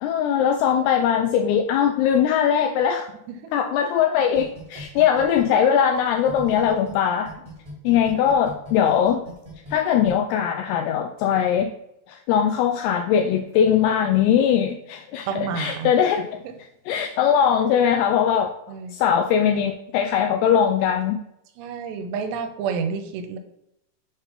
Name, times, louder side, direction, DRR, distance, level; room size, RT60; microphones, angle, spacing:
voice 1, 0.0-3.1 3.5-7.3 7.8-9.2 9.7-11.7 12.1-16.3 16.9-18.5 18.9-21.2, left 8 dB, 85° left, 5 dB, 2.5 m, -20 dB
sound 1, 4.3-6.9 7.2-10.1, right 1 dB, 45° right, 0.4 m, -41 dB
voice 2, 15.3-15.9 18.7-18.9 21.6-23.4, right 6 dB, 85° right, 7 dB, 2.8 m, -29 dB
7.2 x 3.6 x 5.6 m, 0.81 s
omnidirectional pair, 4.8 m